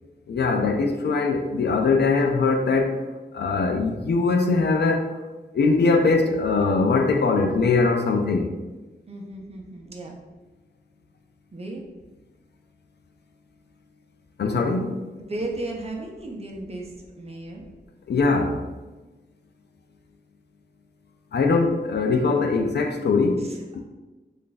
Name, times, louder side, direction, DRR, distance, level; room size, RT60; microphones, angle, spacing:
voice 1, 0.3-3.0 3.3-5.2 5.5-8.5 14.4-15.0 18.1-18.6 21.3-23.8, left 4 dB, 70° left, 0.4 m, -21 dB
voice 2, 9.1-10.2 11.5-11.8 15.3-17.6 23.4-23.8, right 2 dB, 35° right, 0.6 m, -35 dB
3.3 x 2.5 x 3.9 m
wide cardioid pair, 115°, 18 cm